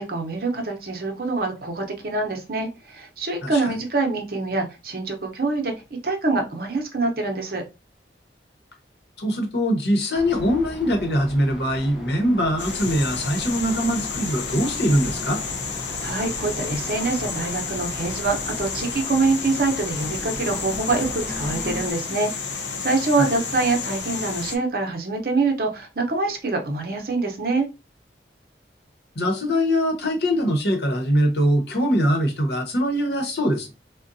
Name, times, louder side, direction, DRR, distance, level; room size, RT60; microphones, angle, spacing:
voice 1, 0.0-5.7 6.0-7.6 16.0-27.7, right 3 dB, 55° right, 0.7 m, -25 dB
voice 2, 3.4-3.8 9.2-15.4 23.2-23.3 29.1-33.7, equal, 65° left, 0.9 m, -22 dB
sound 1, 10.1-21.9, left 1 dB, ahead, 0.6 m, -37 dB
sound 2, 12.6-24.6, left 5 dB, 80° left, 0.6 m, -31 dB
3.7 x 2.2 x 2.6 m
head